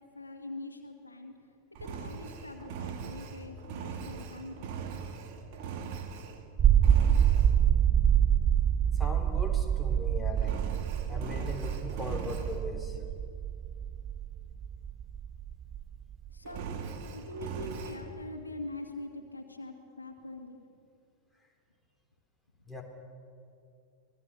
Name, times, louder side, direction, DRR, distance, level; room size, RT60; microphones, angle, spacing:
voice 1, 0.0-1.5 1.8-4.8 16.3-16.6 17.1-20.6, left 2 dB, 80° left, 4 dB, 2.2 m, -43 dB
Engine, 1.8-6.5 6.8-7.5 10.4-12.6 16.4-18.0, right 6 dB, 45° right, 2.2 m, -40 dB
sound 1, 6.6-16.7, right 9 dB, 25° right, 0.5 m, -26 dB
voice 2, 8.9-10.6 11.1-13.0 22.7-22.8, left 2 dB, ahead, 2 dB, 3.8 m, -39 dB
25.5 x 19.0 x 6.9 m, 2.5 s
figure-of-eight pair, 90°, 0 cm